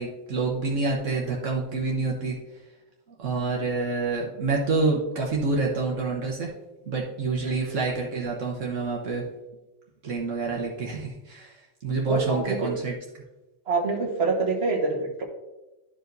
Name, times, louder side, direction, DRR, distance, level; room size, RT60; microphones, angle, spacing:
voice 1, 0.0-2.4 3.2-6.5 6.9-9.2 10.0-12.9, right 3 dB, 75° right, -2 dB, 1.4 m, -27 dB
voice 2, 7.4-7.8 12.1-12.7 13.7-15.2, right 3 dB, 55° right, 0 dB, 1.5 m, -26 dB
12.5 x 4.9 x 2.6 m, 1.0 s
omnidirectional pair, 1.3 m